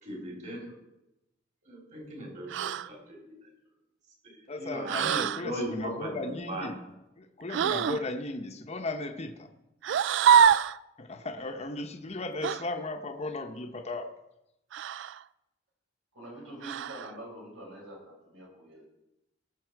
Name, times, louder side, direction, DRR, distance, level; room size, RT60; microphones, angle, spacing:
voice 1, 0.0-0.7 1.6-3.5 4.2-6.7, equal, 40° right, -1 dB, 3.6 m, -38 dB
sound 1, 2.5-2.9 4.9-5.4 7.5-8.0 9.8-10.8 12.4-12.6 14.7-15.2 16.6-17.1, right 8 dB, 65° right, 0.3 m, -24 dB
voice 2, 4.5-6.8 7.2-9.5 11.0-14.1, left 2 dB, 35° left, 5 dB, 0.8 m, -36 dB
voice 3, 16.1-18.8, right 1 dB, 90° right, -3 dB, 5.8 m, -45 dB
19.0 x 6.9 x 4.6 m, 0.91 s
head